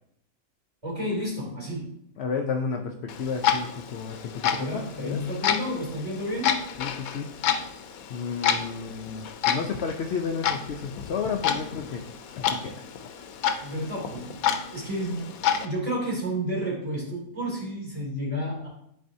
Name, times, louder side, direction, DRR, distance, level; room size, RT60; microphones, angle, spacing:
voice 1, 0.8-1.9 4.5-6.6 13.6-18.7, equal, 25° right, -5 dB, 2.9 m, -31 dB
voice 2, 2.2-5.2 6.8-7.3 8.1-12.1 12.3-12.8, left 5 dB, 60° left, 4 dB, 0.7 m, -32 dB
Clock, 3.1-15.7, left 8 dB, 85° left, 1.1 m, -30 dB
11.0 x 4.2 x 2.6 m, 0.74 s
omnidirectional pair, 1.4 m